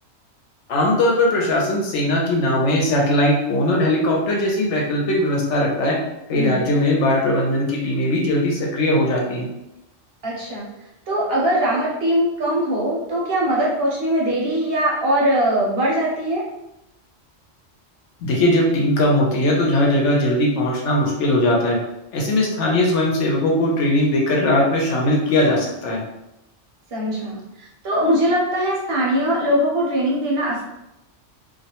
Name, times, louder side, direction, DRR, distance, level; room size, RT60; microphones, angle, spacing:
voice 1, 0.7-6.0 6.3-9.5 18.2-21.8 22.1-26.0, left 1 dB, 70° left, -1 dB, 0.9 m, -19 dB
voice 2, 10.2-10.7 11.1-16.4 26.9-30.6, equal, 60° right, -5 dB, 0.7 m, -21 dB
2.3 x 2.1 x 2.8 m, 0.89 s
omnidirectional pair, 1.3 m